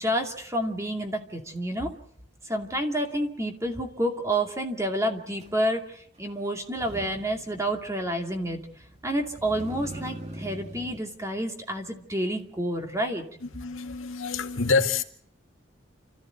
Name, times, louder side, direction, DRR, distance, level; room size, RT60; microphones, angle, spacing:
voice 1, 0.0-1.9 2.4-8.6 9.0-13.8, right 1 dB, 15° right, 2.5 m, -29 dB
Motor vehicle (road), 5.4-5.5 6.7-11.0, right 1 dB, 35° right, 2.7 m, -42 dB
voice 2, 13.4-15.0, left 4 dB, 75° left, 2.0 m, -26 dB
29.5 x 14.0 x 8.0 m
head